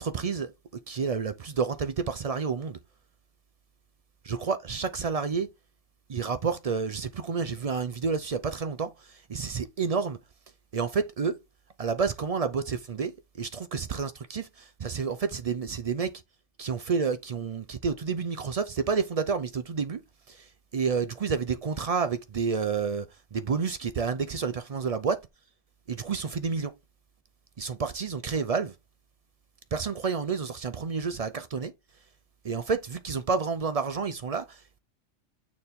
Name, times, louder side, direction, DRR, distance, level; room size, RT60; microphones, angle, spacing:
voice 1, 0.0-2.8 4.3-5.5 6.1-10.2 10.7-11.4 11.8-16.1 16.6-20.0 20.3-25.2 25.9-26.7 27.6-28.8 29.7-31.7 32.4-34.8, right 5 dB, 55° right, 0.4 m, -30 dB
6.7 x 4.2 x 3.5 m
omnidirectional pair, 1.3 m